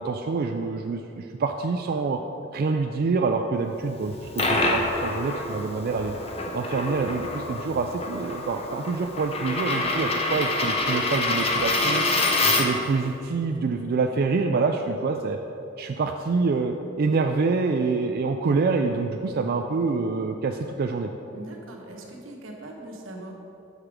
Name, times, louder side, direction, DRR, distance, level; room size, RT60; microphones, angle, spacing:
voice 1, 0.0-2.2 2.5-6.2 6.5-12.1 12.4-15.4 15.8-21.1, right 4 dB, 50° right, 4 dB, 0.3 m, -26 dB
Coin (dropping), 4.0-12.9, left 2 dB, 30° left, 0.7 m, -26 dB
voice 2, 9.9-10.3 21.3-23.3, right 1 dB, 85° right, 0 dB, 1.1 m, -41 dB
6.5 x 5.9 x 5.0 m, 2.9 s
head